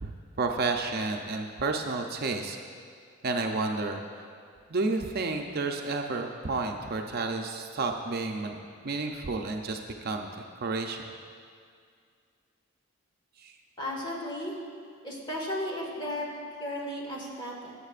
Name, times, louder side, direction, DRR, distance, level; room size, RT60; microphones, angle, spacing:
voice 1, 0.0-2.6 3.2-4.0 4.7-8.6 8.8-10.3 10.6-11.1 13.4-13.5, right 3 dB, 50° right, 3 dB, 0.6 m, -31 dB
voice 2, 13.8-14.5 15.0-16.3 16.6-17.7, left 1 dB, 20° left, -3 dB, 1.7 m, -34 dB
18.5 x 8.1 x 2.5 m, 2.2 s
head